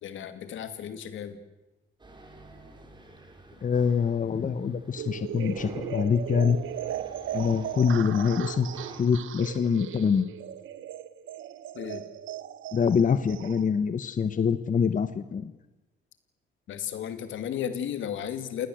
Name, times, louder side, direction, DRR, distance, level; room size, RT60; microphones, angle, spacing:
voice 1, 0.0-1.4 11.7-12.0 16.7-18.7, left 9 dB, 75° left, 10 dB, 2.5 m, -34 dB
sound 1, 2.0-9.0, right 2 dB, 20° right, 5.1 m, -49 dB
voice 2, 3.6-6.6 7.3-8.7 9.0-10.3 12.7-15.5, left 6 dB, 40° left, 11 dB, 1.3 m, -25 dB
sound 2, 5.0-13.6, right 11 dB, 80° right, 1.5 m, -37 dB
28.0 x 19.0 x 8.0 m, 1.0 s
cardioid pair, 90°, 20 cm